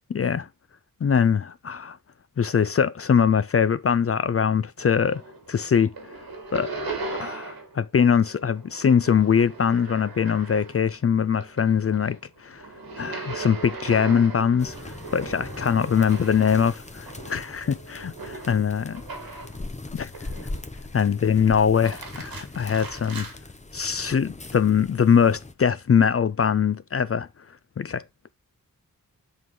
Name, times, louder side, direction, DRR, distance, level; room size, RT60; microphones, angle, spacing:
voice 1, 0.1-0.5 1.0-2.0 2.4-5.2 5.5-5.9 6.5-6.7 7.2-12.6 13.0-19.0 19.9-20.1 20.9-23.3 23.7-27.3 27.8-28.0, left 7 dB, 40° left, 0.4 m, -22 dB
sound 1, 4.8-5.5 5.8-7.8 8.1-10.9 11.3-19.6 20.1-20.8 21.6-23.3, right 3 dB, 85° right, 1.8 m, -38 dB
sound 2, 14.6-25.5, left 2 dB, 20° left, 0.8 m, -40 dB
7.2 x 3.9 x 4.7 m
wide cardioid pair, 60°, 35 cm